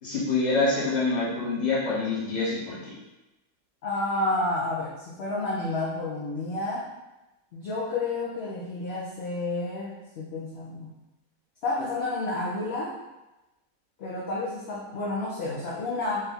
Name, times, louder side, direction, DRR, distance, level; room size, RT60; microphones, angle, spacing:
voice 1, 0.0-3.0, left 3 dB, 30° left, -7 dB, 1.1 m, -26 dB
voice 2, 3.8-6.9 7.5-10.9 11.6-13.0 14.0-16.2, left 2 dB, 55° left, -6 dB, 0.8 m, -30 dB
3.7 x 2.3 x 4.2 m, 1.0 s
omnidirectional pair, 1.6 m